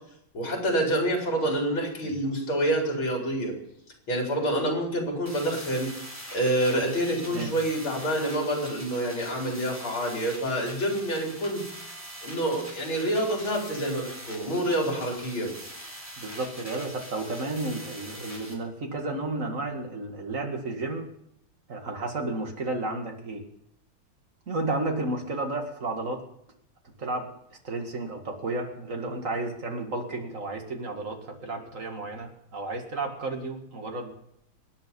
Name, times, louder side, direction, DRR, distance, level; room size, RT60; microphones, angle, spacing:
voice 1, 0.3-3.5 4.1-5.9 6.3-11.6 12.2-15.5, right 1 dB, 80° left, 0 dB, 4.7 m, -27 dB
sound 1, 5.3-18.5, equal, 5° right, 3.8 m, -43 dB
voice 2, 7.3-7.6 16.2-21.1 21.7-23.4 24.5-26.2 27.0-27.3 27.6-34.1, right 2 dB, 40° right, 3 dB, 2.3 m, -32 dB
24.5 x 9.7 x 5.4 m, 0.76 s
omnidirectional pair, 2.2 m